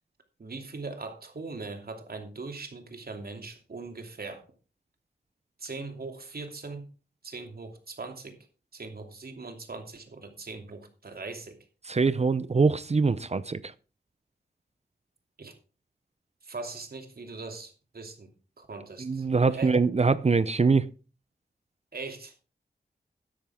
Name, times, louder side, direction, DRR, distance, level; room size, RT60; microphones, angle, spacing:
voice 1, 0.4-4.4 5.6-6.9 7.2-8.4 8.7-11.6 15.4-15.5 16.4-18.3 18.6-19.8 21.9-22.3, right 3 dB, 60° right, 2.9 m, -40 dB
voice 2, 11.9-13.7 19.0-20.9, right 4 dB, 40° right, 0.6 m, -23 dB
13.0 x 10.5 x 3.6 m
wide cardioid pair, 110°, 17 cm